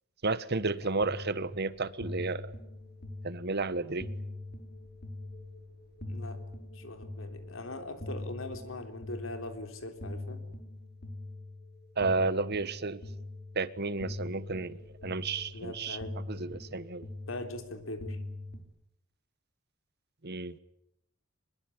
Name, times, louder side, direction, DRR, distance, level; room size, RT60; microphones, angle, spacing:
voice 1, 0.2-2.5 3.2-4.1 12.0-13.0 13.5-14.8 15.0-16.0 16.3-17.1 20.2-20.6, right 3 dB, 55° right, 1.3 m, -32 dB
sound 1, 0.6-18.6, left 2 dB, 50° left, 4.2 m, -43 dB
voice 2, 6.1-6.4 6.7-10.5 15.5-16.2 17.3-18.2, left 2 dB, 75° left, 4.0 m, -41 dB
24.0 x 22.0 x 9.9 m
head